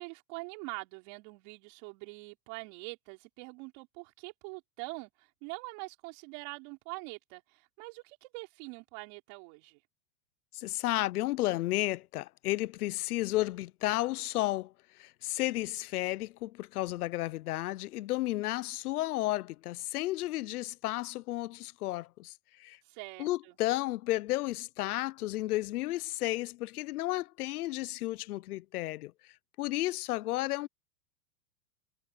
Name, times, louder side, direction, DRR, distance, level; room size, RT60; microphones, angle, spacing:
voice 1, 0.0-9.8 22.8-23.6, right 30 dB, 50° right, 4.9 m, -44 dB
voice 2, 10.5-14.7 15.0-22.3 22.6-22.8 23.2-29.1 29.6-30.7, left 17 dB, 75° left, 0.9 m, -32 dB
supercardioid pair, 145°, 46 cm